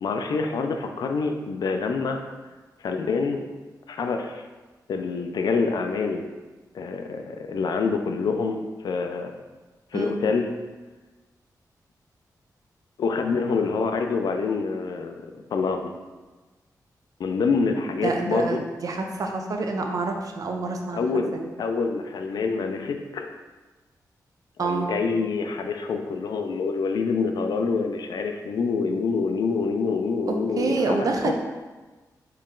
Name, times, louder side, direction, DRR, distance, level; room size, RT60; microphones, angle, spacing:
voice 1, 0.0-2.2 2.8-3.4 3.9-4.4 4.9-6.3 6.7-9.3 9.9-10.5 13.0-15.9 17.2-18.6 20.9-21.3 21.6-23.3 24.6-31.3, left 4 dB, 80° left, 5 dB, 0.4 m, -26 dB
voice 2, 18.0-21.1 24.6-24.9 30.3-31.3, right 3 dB, 60° right, 3 dB, 0.5 m, -27 dB
4.5 x 3.0 x 3.7 m, 1.2 s
wide cardioid pair, 150°, 7 cm